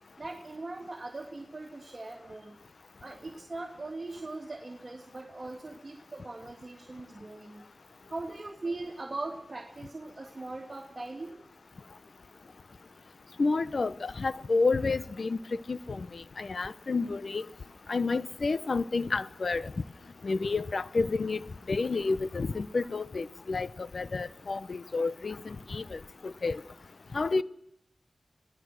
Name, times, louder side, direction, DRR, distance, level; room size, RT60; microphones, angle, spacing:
voice 1, 0.2-2.6 3.0-7.6 8.1-11.3, right 2 dB, 40° right, 2.8 m, -40 dB
voice 2, 13.4-15.4 15.7-17.5 17.9-19.7 20.2-21.4 21.7-23.7 23.9-26.6 27.1-27.4, left 3 dB, 65° left, 0.8 m, -30 dB
25.0 x 18.0 x 6.3 m
cardioid pair, 50°, 0 cm